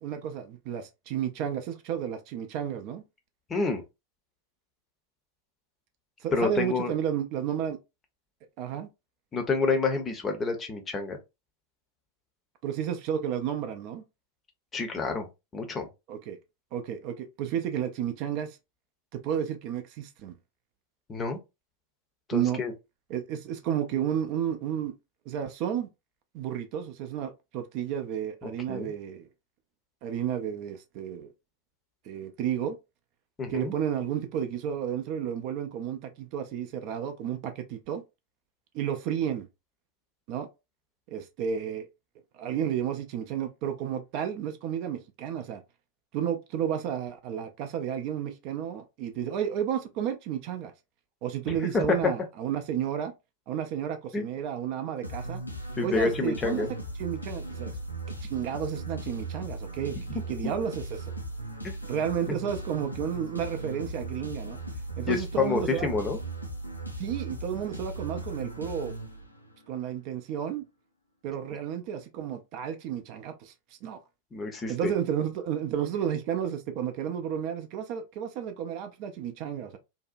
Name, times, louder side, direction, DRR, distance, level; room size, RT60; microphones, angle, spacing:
voice 1, 0.0-3.0 6.2-7.8 8.6-8.9 12.6-14.0 16.1-16.4 16.7-18.6 19.1-20.3 22.3-22.6 23.1-24.9 25.3-25.9 26.3-29.3 30.0-31.3 32.0-32.8 33.5-38.0 38.7-39.5 40.3-40.5 41.1-41.9 42.3-45.6 46.1-50.7 51.2-53.1 53.5-55.4 55.8-56.7 57.0-57.8 58.2-61.1 61.8-64.6 65.0-65.9 67.0-69.0 69.7-70.6 71.2-73.5 73.8-74.0 74.7-79.8, right 9 dB, 45° right, 0.4 m, -32 dB
voice 2, 3.5-3.8 6.3-6.9 9.3-11.2 14.7-15.3 15.5-15.9 21.1-21.4 22.3-22.7 28.7-28.9 33.4-33.7 51.5-51.6 52.0-52.1 54.1-54.2 55.8-56.7 61.6-61.8 65.1-66.2 74.3-74.9, left 4 dB, 20° left, 0.6 m, -28 dB
sound 1, 55.0-69.6, right 2 dB, 85° left, 0.5 m, -37 dB
2.6 x 2.1 x 2.4 m
figure-of-eight pair, 90°, 0 cm